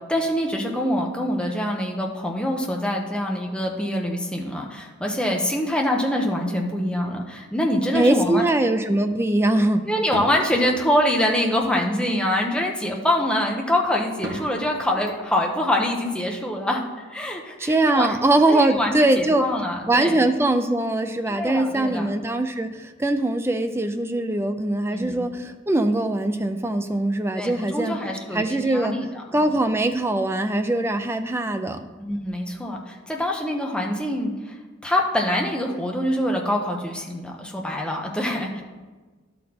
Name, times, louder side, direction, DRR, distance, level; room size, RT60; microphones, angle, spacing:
voice 1, 0.1-8.4 9.9-18.1 18.5-20.2 21.3-22.1 24.9-25.2 27.4-29.6 32.0-34.5 34.8-38.6, left 1 dB, 5° left, 0 dB, 0.8 m, -25 dB
voice 2, 7.9-9.9 17.6-19.4 19.9-28.0 28.3-29.0 29.3-31.9, right 2 dB, 10° right, 8 dB, 0.4 m, -22 dB
sound 1, 10.1-11.6 14.2-16.1, right 1 dB, 60° right, 1.4 m, -38 dB
11.5 x 4.3 x 4.2 m, 1.3 s
head